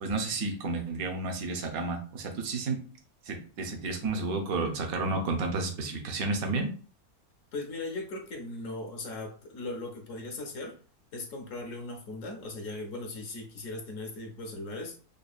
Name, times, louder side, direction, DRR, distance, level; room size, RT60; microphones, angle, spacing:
voice 1, 0.0-2.8 3.3-6.7, right 3 dB, 70° right, 4 dB, 1.2 m, -31 dB
voice 2, 7.5-10.8 11.1-15.0, left 2 dB, 65° left, 3 dB, 1.0 m, -38 dB
5.1 x 2.2 x 2.3 m, 0.40 s
omnidirectional pair, 1.6 m